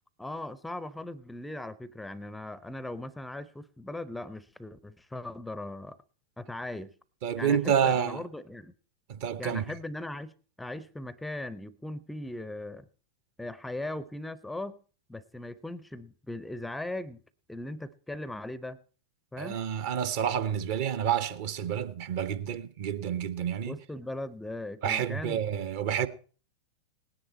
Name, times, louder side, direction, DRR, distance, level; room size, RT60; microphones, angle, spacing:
voice 1, 0.2-6.0 6.4-6.9 7.4-8.7 9.4-10.3 10.6-12.9 13.4-14.8 15.1-17.2 17.5-18.8 19.3-19.6 23.7-25.4, left 1 dB, 5° left, 0.5 m, -39 dB
voice 2, 7.2-8.2 9.1-9.7 19.4-23.8 24.8-26.1, right 8 dB, 50° right, 0.8 m, -29 dB
18.5 x 10.0 x 4.2 m
figure-of-eight pair, 90°, 0 cm